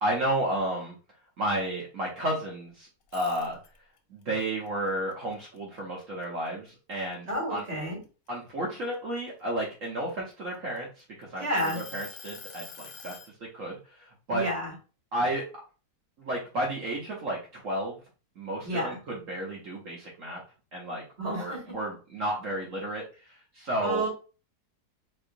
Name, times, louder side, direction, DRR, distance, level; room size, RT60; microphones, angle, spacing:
voice 1, 0.0-0.9 1.4-3.6 4.1-7.6 8.3-13.2 13.5-14.4 15.1-15.5 16.2-18.0 18.4-20.4 20.7-21.0 21.3-24.0, right 1 dB, 60° right, -3 dB, 1.1 m, -32 dB
sound 1, 3.0-4.0 4.4-6.2 6.7-6.9 7.4-9.2 9.9-11.0 11.6-13.3, left 5 dB, 65° left, 1.0 m, -46 dB
voice 2, 7.3-8.0 11.4-11.8 14.3-14.7 18.6-19.0 21.2-21.8 23.8-24.1, right 1 dB, 40° right, -3 dB, 2.0 m, -30 dB
4.2 x 2.9 x 2.6 m, 0.35 s
omnidirectional pair, 1.7 m